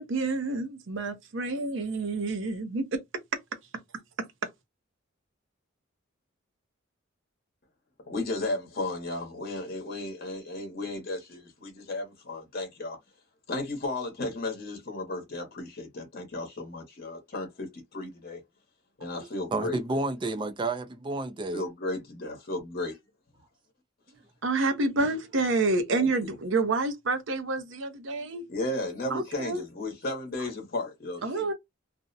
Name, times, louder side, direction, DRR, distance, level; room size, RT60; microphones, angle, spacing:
voice 1, 0.0-3.0 24.4-28.4 29.1-29.6 31.2-31.5, right 3 dB, 65° right, 0.6 m, -28 dB
voice 2, 8.1-13.0 13.5-18.4 19.0-19.8 21.5-22.9 25.9-26.3 28.5-31.5, left 2 dB, 50° left, 0.9 m, -34 dB
voice 3, 19.5-21.6 28.2-28.3 29.0-29.1, right 2 dB, 25° right, 0.3 m, -31 dB
2.5 x 2.0 x 2.5 m
head